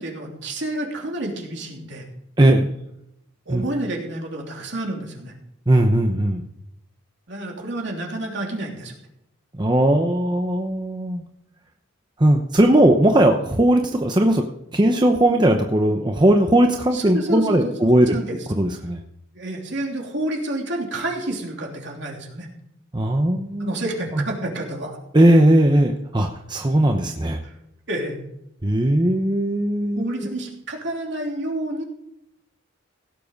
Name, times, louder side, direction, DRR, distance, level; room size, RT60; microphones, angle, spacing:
voice 1, 0.0-2.1 3.5-5.3 7.3-8.9 16.9-18.4 19.3-22.5 23.6-25.0 27.4-27.5 27.9-28.2 30.0-31.8, right 1 dB, 60° right, 0 dB, 3.1 m, -29 dB
voice 2, 2.4-2.7 3.5-3.6 5.7-6.4 9.6-11.2 12.2-14.4 14.7-18.1 18.6-19.0 22.9-23.7 24.1-24.2 25.1-27.4 28.6-30.3, right 1 dB, 20° right, 4 dB, 0.8 m, -18 dB
17.0 x 7.6 x 5.3 m, 0.80 s
head